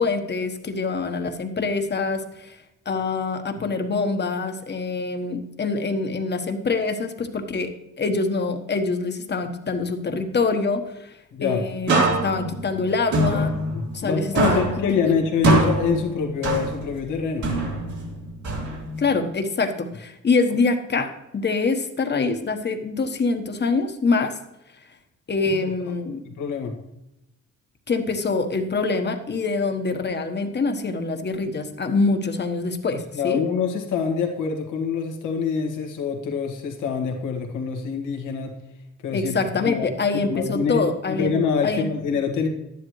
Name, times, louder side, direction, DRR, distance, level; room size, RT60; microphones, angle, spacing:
voice 1, 0.0-2.6 2.8-7.7 8.0-11.1 11.4-13.5 13.9-14.7 19.0-24.4 25.3-26.2 27.9-33.4 39.1-41.3 41.6-41.9, left 4 dB, 35° left, 7 dB, 1.2 m, -25 dB
voice 2, 11.3-11.6 13.3-13.4 13.7-17.5 25.4-25.6 25.9-26.0 26.3-26.7 33.1-38.5 39.0-39.9 40.2-42.5, left 6 dB, 85° left, 2 dB, 1.9 m, -25 dB
sound 1, 11.9-14.1 14.4-17.0 17.4-19.1, right 2 dB, 70° right, 2.9 m, -23 dB
11.5 x 10.5 x 3.2 m, 0.88 s
cardioid pair, 90°, 30 cm